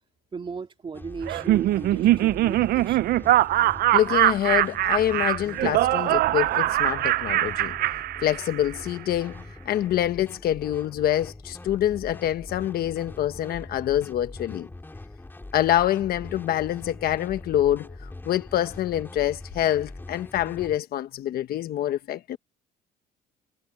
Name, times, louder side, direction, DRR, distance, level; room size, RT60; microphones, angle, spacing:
voice 1, 0.3-3.1, right 5 dB, 30° right, 2.0 m, -37 dB
sound 1, 0.9-20.8, left 2 dB, 10° left, 3.9 m, -43 dB
Laughter, 1.3-8.8, right 15 dB, 65° right, 0.5 m, -22 dB
voice 2, 3.9-7.8 8.2-14.7 15.5-22.4, left 12 dB, 65° left, 1.1 m, -26 dB
cardioid pair, 110°, 17 cm